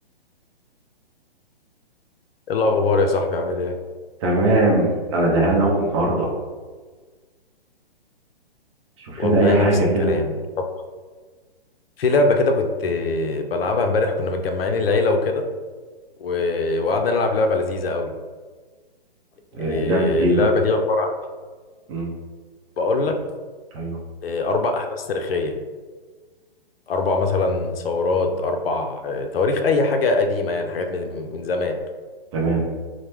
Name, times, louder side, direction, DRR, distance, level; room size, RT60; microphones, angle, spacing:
voice 1, 2.5-3.8 9.2-9.7 10.0-10.3 12.0-15.4 16.2-18.1 19.6-21.1 22.8-23.2 24.2-25.5 26.9-31.8, left 3 dB, 75° left, 5 dB, 0.5 m, -22 dB
voice 2, 4.2-6.3 9.0-10.1 19.5-20.5 21.9-22.1 23.7-24.0 32.3-32.6, right 1 dB, 30° right, -2 dB, 0.6 m, -20 dB
3.1 x 2.1 x 3.1 m, 1.4 s
hypercardioid pair, 135°, 30 cm